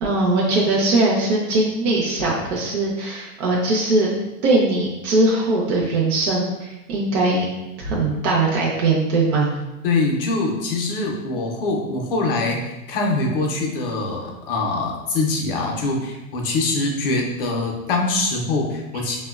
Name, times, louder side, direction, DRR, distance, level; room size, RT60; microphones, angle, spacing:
voice 1, 0.0-4.1 4.4-7.4 7.8-9.5, right 2 dB, 50° right, -3 dB, 0.5 m, -20 dB
voice 2, 9.8-12.6 12.9-19.2, left 3 dB, 40° left, 0 dB, 0.5 m, -23 dB
4.3 x 2.1 x 2.3 m, 1.0 s
supercardioid pair, 175°, 43 cm